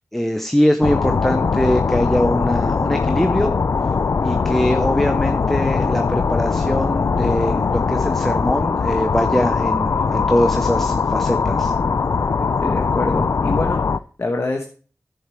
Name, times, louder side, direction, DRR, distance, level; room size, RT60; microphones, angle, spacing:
voice 1, 0.1-3.6 4.2-11.7, equal, 5° left, 6 dB, 0.8 m, -22 dB
sound 1, 0.8-14.0, left 5 dB, 70° left, 0.4 m, -20 dB
voice 2, 12.4-13.8 14.2-14.6, left 2 dB, 55° left, 2 dB, 1.3 m, -25 dB
11.0 x 6.7 x 4.6 m, 0.40 s
wide cardioid pair, 65°, 5 cm